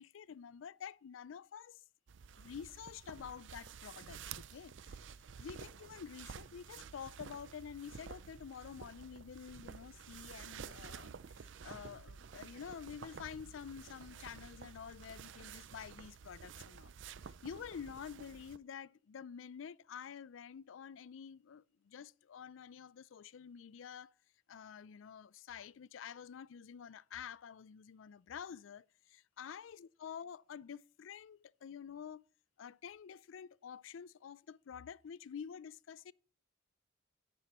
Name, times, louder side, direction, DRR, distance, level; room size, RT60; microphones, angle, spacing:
voice 1, 0.0-1.8 2.4-5.0 5.4-11.1 11.6-16.9 17.4-24.1 24.5-32.2 32.6-36.1, left 7 dB, 85° left, 0.4 m, -49 dB
sound 1, 2.1-18.6, right 6 dB, 70° right, 0.5 m, -51 dB
11.0 x 9.9 x 3.0 m
head